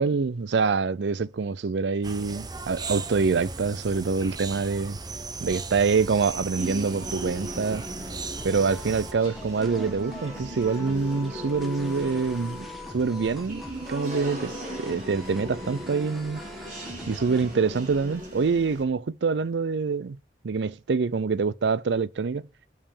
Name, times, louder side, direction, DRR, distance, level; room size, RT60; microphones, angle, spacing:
voice 1, 0.0-5.0 5.4-7.8 8.4-12.7 12.9-13.6 13.9-14.5 14.8-16.4 17.1-20.2 20.4-22.5, right 4 dB, 85° right, 0.5 m, -25 dB
sound 1, 2.0-9.1, right 4 dB, 25° right, 0.8 m, -37 dB
sound 2, 6.6-18.8, equal, 45° right, 3.6 m, -38 dB
sound 3, 8.4-17.6, left 1 dB, ahead, 1.6 m, -42 dB
6.7 x 5.8 x 7.0 m
head